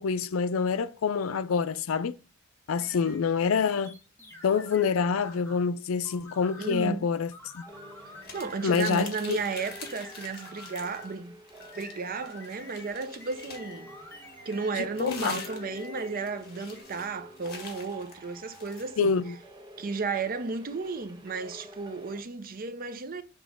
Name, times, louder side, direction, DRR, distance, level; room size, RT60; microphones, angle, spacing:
voice 1, 0.0-2.2 2.7-3.9 4.4-7.3 7.5-7.7 8.6-9.4 14.8-15.4 19.0-19.4, left 5 dB, 75° left, 0.4 m, -27 dB
sound 1, 2.8-5.7 6.0-6.9 7.3-9.0 9.3-11.2 11.6-14.8 15.1-16.4 16.7-16.8, left 2 dB, 10° left, 1.1 m, -49 dB
voice 2, 6.6-7.1 8.3-11.3 11.8-13.9 14.5-19.1 19.8-23.2, right 4 dB, 45° right, 0.6 m, -33 dB
sound 2, 7.7-22.2, left 1 dB, 20° right, 1.0 m, -49 dB
sound 3, 8.2-11.1 11.4-13.8 14.5-18.9, left 5 dB, 50° left, 1.8 m, -45 dB
7.1 x 3.0 x 5.0 m
head